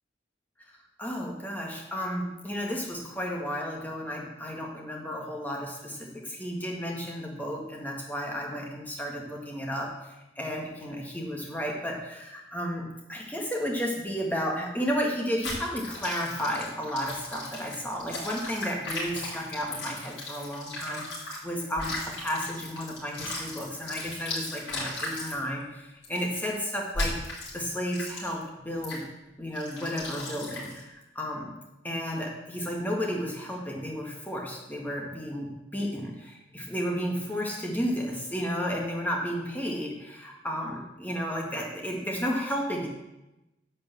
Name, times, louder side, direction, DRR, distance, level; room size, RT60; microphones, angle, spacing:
voice 1, 1.0-27.2 27.5-29.0 29.4-31.5 31.8-42.9, equal, 10° left, -1 dB, 1.9 m, -33 dB
sound 1, 15.4-21.4 21.7-25.4 26.0-26.4 26.9-27.6 27.9-28.4 28.8-29.0 29.5-30.8, left 2 dB, 90° left, 4.9 m, -36 dB
11.0 x 5.4 x 7.6 m, 0.96 s
head